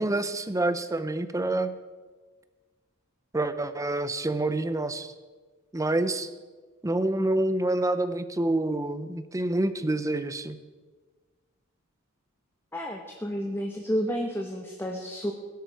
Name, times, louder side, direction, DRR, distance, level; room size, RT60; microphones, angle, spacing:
voice 1, 0.0-1.7 3.3-5.1 5.7-6.3 6.8-10.6, right 2 dB, 15° right, 12 dB, 0.6 m, -27 dB
voice 2, 12.7-15.3, equal, 10° left, 2 dB, 1.0 m, -31 dB
17.0 x 10.5 x 4.7 m, 1.4 s
head